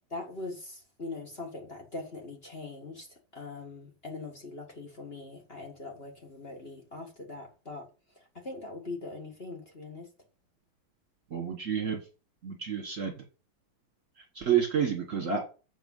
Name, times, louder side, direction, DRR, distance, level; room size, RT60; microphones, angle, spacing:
voice 1, 0.1-10.1, left 3 dB, 30° left, 1.9 m, -42 dB
voice 2, 11.3-12.0 12.4-13.1 14.3-15.4, right 8 dB, 40° right, 1.7 m, -29 dB
8.9 x 5.2 x 5.6 m
omnidirectional pair, 2.3 m